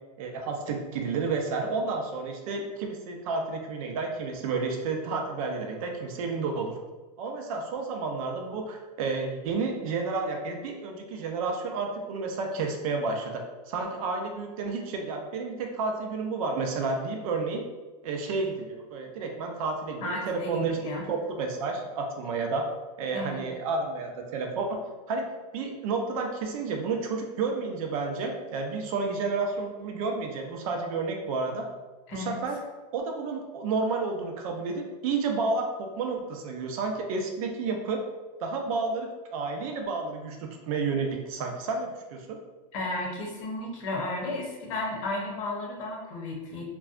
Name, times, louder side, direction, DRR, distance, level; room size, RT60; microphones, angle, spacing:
voice 1, 0.2-6.7 7.2-17.6 18.0-22.6 23.0-24.8 25.1-25.3 25.5-31.6 32.1-32.6 32.9-38.0 38.4-42.4, right 4 dB, 60° right, 3 dB, 0.5 m, -31 dB
voice 2, 20.0-21.0 23.1-23.4 32.1-32.3 42.7-46.6, left 2 dB, 55° left, -1 dB, 0.8 m, -33 dB
2.6 x 2.2 x 2.4 m, 1.2 s
supercardioid pair, 155°, 20 cm